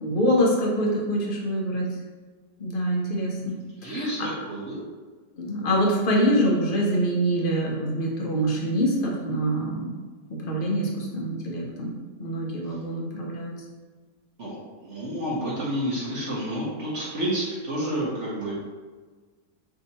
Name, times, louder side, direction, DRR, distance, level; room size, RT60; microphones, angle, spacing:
voice 1, 0.0-1.9 2.6-4.1 5.4-9.9 10.3-11.9 12.2-13.5, equal, 60° left, -2 dB, 0.5 m, -25 dB
voice 2, 3.8-4.2 4.4-4.8 14.4-18.5, right 1 dB, 55° right, -6 dB, 0.9 m, -29 dB
3.5 x 2.7 x 4.0 m, 1.4 s
omnidirectional pair, 1.8 m